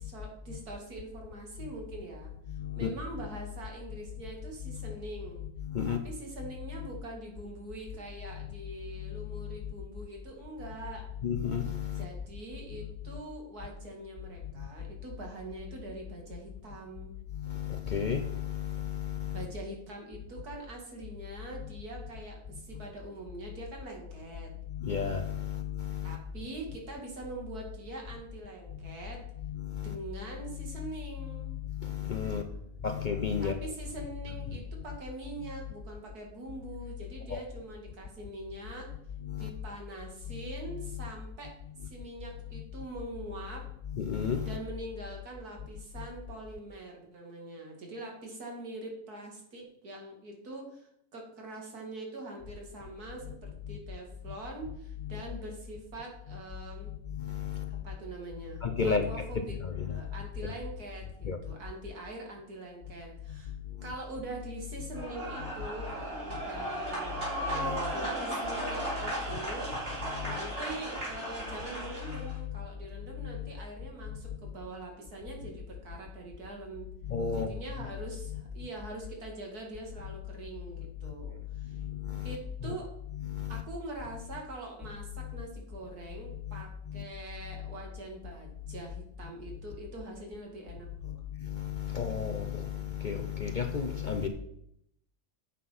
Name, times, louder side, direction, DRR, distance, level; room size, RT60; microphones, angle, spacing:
voice 1, 0.0-5.4 5.9-11.0 12.0-17.1 19.3-24.5 26.0-29.2 29.8-31.5 32.3-32.7 33.4-38.9 39.4-41.5 41.8-43.7 44.5-56.9 57.7-58.6 59.0-59.6 59.9-63.5 63.8-67.3 67.8-76.9 77.4-81.8 82.2-82.9 83.5-91.2, right 2 dB, 85° right, 2.6 m, -43 dB
voice 2, 2.5-2.9 4.7-4.9 5.6-6.0 8.4-8.5 9.0-9.7 11.2-12.1 14.6-14.7 17.3-19.5 22.5-22.6 24.7-26.2 28.8-28.9 29.4-30.0 30.8-30.9 31.2-32.4 32.8-33.5 37.3-37.4 39.2-39.5 40.3-40.4 40.9-41.1 43.9-44.6 46.0-46.1 53.7-53.8 55.0-55.2 56.9-57.8 58.6-60.0 61.2-61.6 63.3-63.9 67.5-67.9 69.3-69.4 70.1-70.4 72.4-72.6 73.2-73.4 74.1-74.5 77.0-77.5 81.0-81.1 81.5-82.4 82.6-82.8 83.1-83.6 86.5-87.1 88.7-88.8 91.0-94.3, left 7 dB, 50° left, 0.5 m, -34 dB
sound 1, 64.9-72.3, right 1 dB, 50° right, 4.2 m, -35 dB
8.4 x 5.9 x 5.5 m
omnidirectional pair, 1.6 m